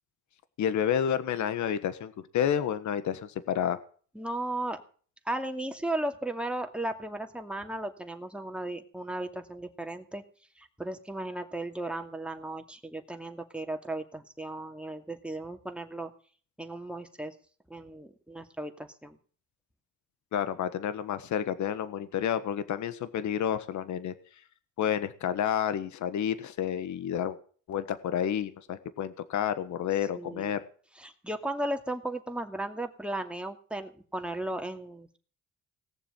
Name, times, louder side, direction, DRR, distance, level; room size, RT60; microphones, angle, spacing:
voice 1, 0.6-3.8 20.3-24.1 24.8-27.4 27.7-30.6, left 9 dB, 70° left, 13 dB, 1.4 m, -30 dB
voice 2, 4.1-4.8 5.3-10.2 10.6-16.1 16.6-17.3 17.7-19.2 30.1-30.6 31.0-35.2, right 1 dB, 5° right, 5 dB, 2.4 m, -35 dB
18.5 x 7.0 x 9.1 m, 0.43 s
cardioid pair, 90°, 30 cm